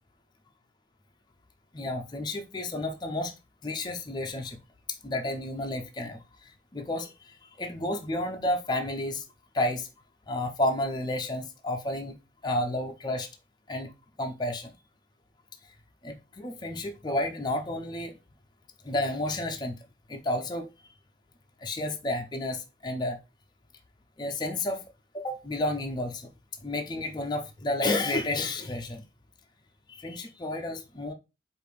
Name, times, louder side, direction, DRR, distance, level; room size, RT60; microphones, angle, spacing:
voice 1, 1.7-3.3 3.6-4.6 5.0-9.2 9.5-9.9 10.3-12.2 12.4-13.3 13.7-13.9 14.2-14.7 16.0-18.2 18.8-19.7 20.1-20.7 21.6-23.2 24.2-24.8 25.1-26.3 26.6-29.0 29.9-31.1, left 1 dB, 25° left, 0.5 m, -31 dB
4.9 x 2.5 x 3.2 m
head